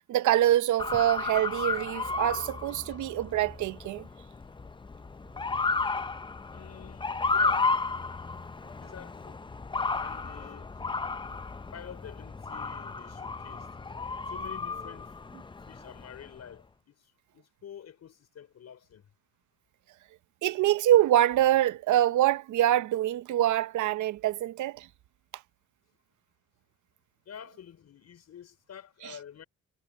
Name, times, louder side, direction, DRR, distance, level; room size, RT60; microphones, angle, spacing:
voice 1, 0.1-4.0 20.4-24.9, right 13 dB, 75° right, 0.8 m, -25 dB
Motor vehicle (road) / Siren, 0.8-16.4, left 4 dB, 15° left, 0.6 m, -33 dB
voice 2, 6.5-7.7 8.8-9.4 10.0-10.7 11.7-13.7 14.3-15.1 15.6-16.9 17.3-19.0 27.3-29.4, left 9 dB, 60° left, 4.7 m, -48 dB
cardioid pair, 90°, 30 cm